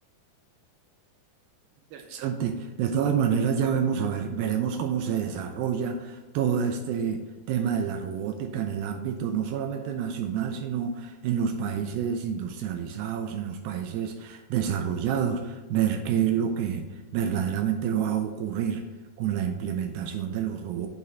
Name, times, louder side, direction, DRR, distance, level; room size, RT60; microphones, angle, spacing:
voice 1, 1.9-7.2 7.5-18.8 19.2-20.9, right 8 dB, 80° right, 5 dB, 2.2 m, -28 dB
8.1 x 3.1 x 6.0 m, 1.2 s
omnidirectional pair, 4.7 m